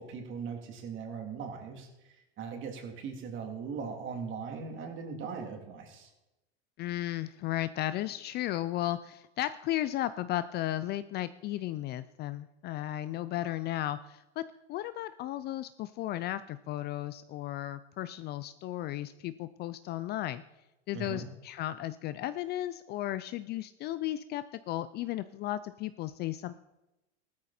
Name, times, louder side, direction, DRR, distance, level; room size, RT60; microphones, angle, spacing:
voice 1, 0.0-1.9 2.4-6.1 20.9-21.3, right 5 dB, 35° right, 3 dB, 3.2 m, -39 dB
voice 2, 6.8-14.4 14.7-20.4 20.9-26.6, left 14 dB, 30° left, 14 dB, 0.4 m, -35 dB
15.0 x 13.5 x 4.3 m, 0.98 s
supercardioid pair, 125°, 33 cm